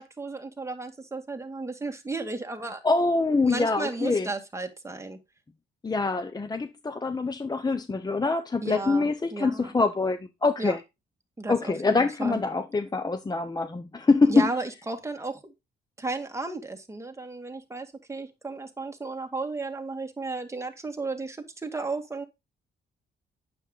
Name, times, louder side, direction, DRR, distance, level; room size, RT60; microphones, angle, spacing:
voice 1, 0.0-2.8 3.5-5.2 8.6-9.8 10.6-10.8 11.4-12.4 14.3-15.5 16.0-22.2, right 3 dB, 15° right, 2.1 m, -34 dB
voice 2, 2.8-4.3 5.8-10.8 11.5-14.5, left 3 dB, 20° left, 0.8 m, -25 dB
9.1 x 7.7 x 3.9 m
cardioid pair, 90°, 20 cm